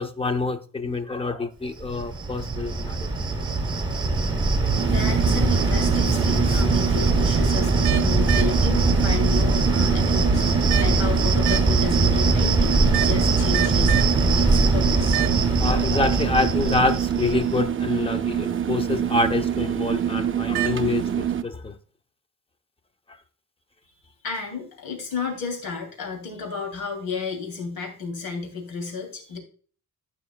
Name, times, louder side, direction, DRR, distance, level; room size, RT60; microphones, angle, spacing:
voice 1, 0.0-3.0 15.3-21.7, left 2 dB, 15° left, 0.7 m, -26 dB
Cricket, 1.8-17.5, right 3 dB, 15° right, 1.1 m, -22 dB
sound 1, 4.7-21.4, right 9 dB, 35° right, 0.5 m, -26 dB
voice 2, 4.9-14.0 14.3-15.2 24.2-29.4, left 5 dB, 80° left, 3.0 m, -32 dB
14.5 x 5.7 x 2.3 m
wide cardioid pair, 155°, 35 cm